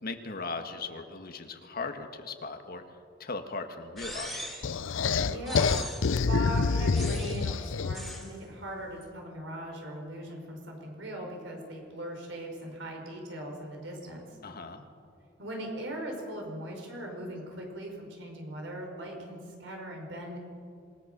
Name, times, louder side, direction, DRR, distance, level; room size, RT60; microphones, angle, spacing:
voice 1, 0.0-2.8 3.2-4.5 14.4-14.8, left 3 dB, 50° left, 6 dB, 1.6 m, -38 dB
sound 1, 4.0-4.8 5.4-6.2 6.9-7.5 7.9-8.3, equal, ahead, 3.5 m, -40 dB
sound 2, 4.6-8.2, left 4 dB, 90° left, 0.6 m, -27 dB
voice 2, 4.9-5.9 6.2-14.4 15.4-20.4, right 1 dB, 70° right, 1 dB, 5.0 m, -39 dB
26.5 x 18.0 x 6.7 m, 2.4 s
head